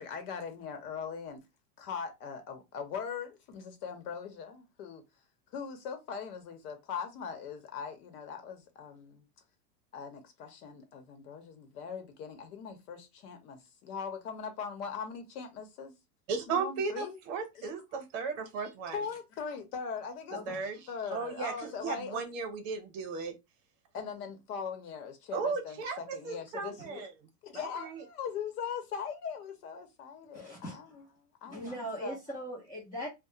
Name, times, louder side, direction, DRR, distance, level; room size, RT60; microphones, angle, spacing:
voice 1, 0.0-1.4 1.8-5.0 5.5-9.2 9.9-15.9 16.5-17.2 17.5-17.7 18.9-20.5 20.9-22.2 23.9-27.1 27.4-32.2, left 6 dB, 65° left, 0.9 m, -40 dB
voice 2, 16.3-18.9 20.5-20.8 21.1-23.3 25.3-26.0 26.2-27.1 27.6-28.0, right 5 dB, 50° right, 0.9 m, -35 dB
voice 3, 30.3-31.0 31.4-33.1, equal, 10° left, 0.4 m, -40 dB
2.3 x 2.1 x 2.7 m
supercardioid pair, 135°, 48 cm